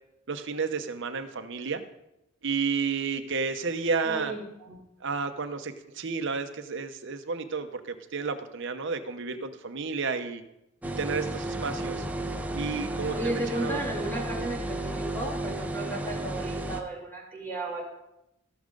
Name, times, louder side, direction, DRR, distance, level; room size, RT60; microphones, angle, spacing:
voice 1, 0.3-1.8 2.4-4.3 5.0-10.4 10.8-12.0 12.5-13.9, right 5 dB, 60° right, 7 dB, 0.8 m, -31 dB
voice 2, 4.0-4.8 13.1-17.8, right 1 dB, 10° left, -4 dB, 2.9 m, -34 dB
sound 1, 10.8-16.8, right 1 dB, 5° right, 0.5 m, -33 dB
16.0 x 6.5 x 3.9 m, 0.87 s
head